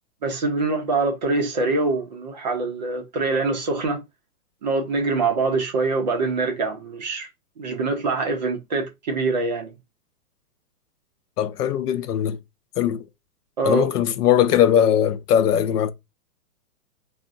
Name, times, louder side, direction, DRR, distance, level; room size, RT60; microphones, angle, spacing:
voice 1, 0.2-4.0 4.6-7.3 7.6-9.7 13.6-13.9, right 3 dB, 30° right, 0.4 m, -24 dB
voice 2, 11.4-12.4 12.8-13.0 13.6-15.9, left 9 dB, 85° left, 0.6 m, -20 dB
3.5 x 2.0 x 2.5 m
hypercardioid pair, 140°, 46 cm